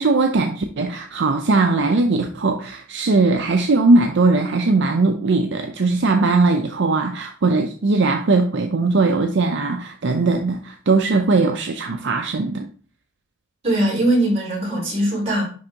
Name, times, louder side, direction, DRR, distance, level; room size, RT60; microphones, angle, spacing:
voice 1, 0.0-12.7, right 3 dB, 60° right, 5 dB, 0.5 m, -19 dB
voice 2, 13.6-15.4, right 1 dB, 30° right, -3 dB, 3.3 m, -20 dB
10.5 x 3.5 x 2.9 m, 0.41 s
head